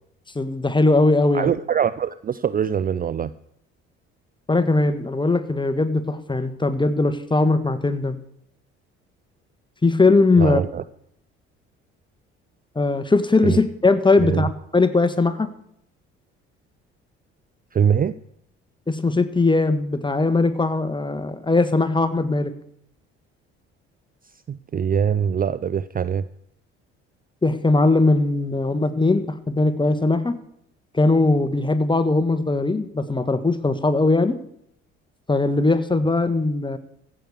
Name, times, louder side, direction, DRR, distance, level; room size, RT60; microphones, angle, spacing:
voice 1, 0.3-1.5 4.5-8.2 9.8-10.6 12.7-14.5 14.7-15.5 18.9-22.5 27.4-30.4 30.9-34.4 35.3-36.8, left 3 dB, 15° left, 9 dB, 1.5 m, -20 dB
voice 2, 1.3-3.3 10.4-10.8 13.4-13.6 14.2-14.4 17.7-18.1 24.5-26.2, right 8 dB, 25° right, 15 dB, 0.5 m, -23 dB
15.5 x 6.7 x 7.0 m, 0.73 s
hypercardioid pair, 55°, 32 cm